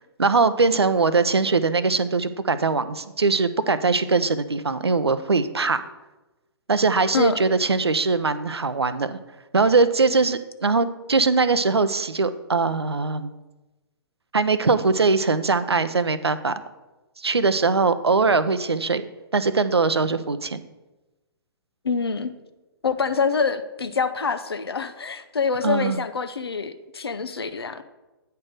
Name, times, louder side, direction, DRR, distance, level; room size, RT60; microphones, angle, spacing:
voice 1, 0.2-5.8 6.7-9.2 9.5-13.3 14.3-16.5 17.2-19.0 19.3-20.6 25.6-26.0, right 4 dB, 80° right, 13 dB, 0.5 m, -21 dB
voice 2, 21.8-22.3 22.8-27.8, left 5 dB, 70° left, 11 dB, 0.6 m, -26 dB
9.4 x 4.5 x 5.0 m, 1.1 s
figure-of-eight pair, 120°, 13 cm